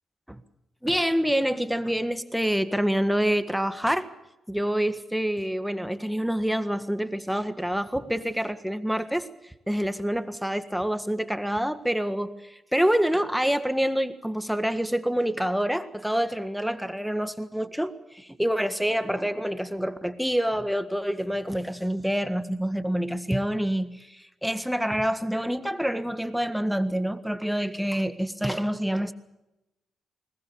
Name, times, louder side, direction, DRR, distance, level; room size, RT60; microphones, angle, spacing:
voice 1, 0.8-4.1 4.5-29.1, equal, ahead, 11 dB, 1.7 m, -27 dB
21.0 x 20.5 x 7.0 m, 0.94 s
hypercardioid pair, 45°, 0 cm